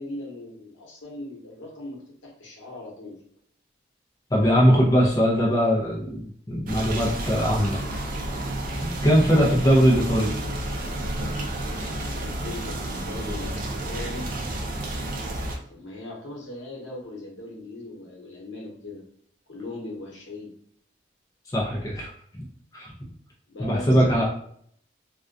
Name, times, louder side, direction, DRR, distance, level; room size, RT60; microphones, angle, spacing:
voice 1, 0.0-3.2 9.2-9.6 12.1-14.3 15.7-19.0 19.5-20.5 23.5-24.3, left 2 dB, 80° left, -3 dB, 0.9 m, -39 dB
voice 2, 4.3-7.8 8.8-10.3 21.5-22.4 22.7-22.9 23.6-24.3, equal, 20° left, -4 dB, 0.5 m, -21 dB
sound 1, 6.7-15.6, right 1 dB, 45° right, 0.4 m, -31 dB
2.3 x 2.2 x 2.5 m, 0.63 s
head